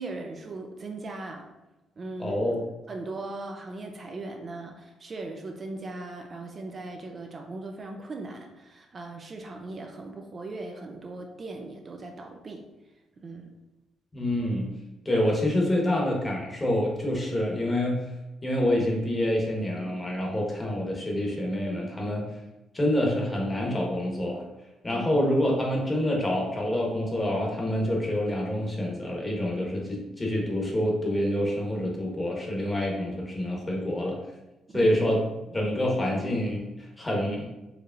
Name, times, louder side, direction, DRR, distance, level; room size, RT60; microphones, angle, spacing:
voice 1, 0.0-1.5 2.0-2.5 2.9-12.6 13.2-13.5 24.9-25.0 34.7-34.9 35.5-35.7, right 2 dB, 40° right, 3 dB, 0.5 m, -39 dB
voice 2, 2.2-2.6 14.1-14.7 15.0-18.1 18.4-22.2 22.7-24.4 24.8-34.2 34.7-35.2 35.5-37.4, left 1 dB, 25° left, -1 dB, 1.2 m, -27 dB
4.8 x 3.0 x 2.5 m, 1.0 s
cardioid pair, 90°, 0 cm